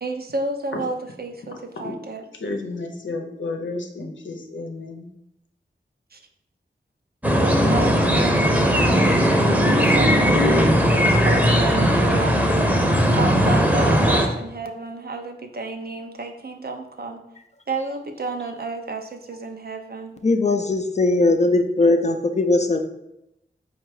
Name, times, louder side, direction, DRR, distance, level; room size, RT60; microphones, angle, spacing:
voice 1, 0.0-2.2 6.1-6.2 7.4-9.3 9.7-10.5 11.0-12.4 13.2-17.2 17.7-20.1, right 3 dB, 55° right, 5 dB, 0.6 m, -31 dB
voice 2, 2.4-5.1, left 3 dB, 80° left, 2 dB, 0.7 m, -31 dB
sound 1, 7.2-14.3, equal, 10° right, 0.8 m, -18 dB
voice 3, 20.2-22.8, left 2 dB, 35° left, 6 dB, 0.5 m, -19 dB
4.5 x 2.4 x 4.8 m, 0.84 s
cardioid pair, 45°, 19 cm